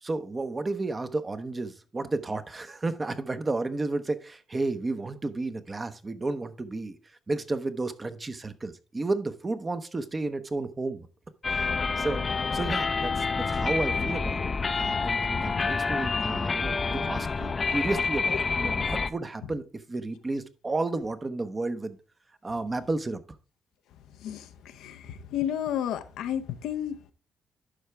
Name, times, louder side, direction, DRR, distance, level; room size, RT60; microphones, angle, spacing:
voice 1, 0.0-7.0 7.3-11.1 11.5-12.2 12.5-22.0 22.4-23.2, right 2 dB, 25° right, 0.8 m, -32 dB
sound 1, 11.4-19.1, left 4 dB, 35° left, 0.5 m, -28 dB
voice 2, 24.0-27.1, left 10 dB, 85° left, 0.6 m, -32 dB
11.5 x 4.7 x 3.3 m
cardioid pair, 90°, 0 cm